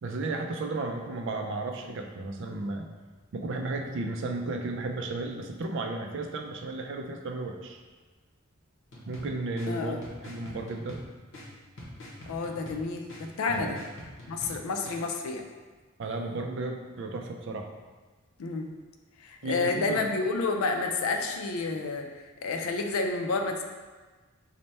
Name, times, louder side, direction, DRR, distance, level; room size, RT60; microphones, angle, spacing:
voice 1, 0.0-2.9 3.3-7.8 9.1-11.1 13.5-13.8 16.0-17.7 19.4-20.0, right 2 dB, 60° right, 4 dB, 0.4 m, -34 dB
sound 1, 8.9-15.0, left 1 dB, 65° left, 0.8 m, -46 dB
voice 2, 9.7-10.0 12.3-13.8 14.3-15.4 18.4-18.7 19.2-23.6, left 3 dB, 85° left, 4 dB, 0.4 m, -30 dB
3.3 x 2.1 x 4.1 m, 1.3 s
head